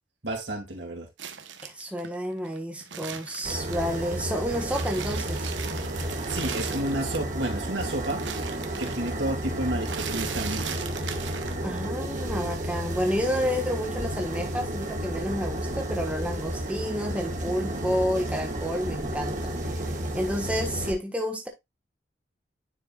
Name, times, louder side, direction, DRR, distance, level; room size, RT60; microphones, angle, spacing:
voice 1, 0.2-1.1 6.3-8.5 8.8-10.8, right 1 dB, 70° right, 2.9 m, -31 dB
sound 1, 1.2-4.2 4.5-7.4 7.7-12.0 12.3-13.2, right 7 dB, 90° right, 1.1 m, -38 dB
voice 2, 1.6-5.5 11.6-21.5, equal, 5° right, 1.3 m, -30 dB
sound 2, 3.4-20.9, right 1 dB, 45° right, 1.7 m, -32 dB
10.0 x 4.6 x 2.4 m
head